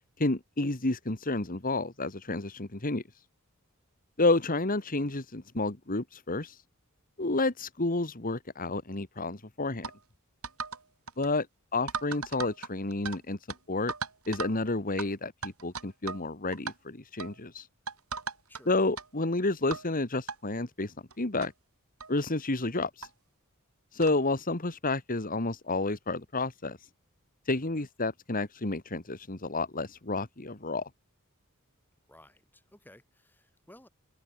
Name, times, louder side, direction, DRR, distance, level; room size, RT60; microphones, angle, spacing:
voice 1, 0.2-3.0 4.2-6.6 7.2-9.9 11.2-11.5 11.7-13.4 13.7-13.9 14.3-17.7 18.7-21.5 22.1-23.1 23.9-26.8 27.5-30.9, left 2 dB, 40° left, 2.0 m, -30 dB
sound 1, 9.8-10.0 10.4-10.8 11.1-11.3 11.9-13.2 13.5-13.6 13.9-14.6 15.0-15.1 15.4-16.2 16.5-16.7 17.2-17.4 17.9-18.6 19.0-19.1 19.7-19.9 20.3-20.4 21.1-21.2 21.4-21.5 22.0-22.1 23.0-23.1 24.0-24.2, right 5 dB, 80° right, 7.0 m, -37 dB
voice 2, 32.1-33.9, left 1 dB, 10° left, 6.8 m, -56 dB
open air
head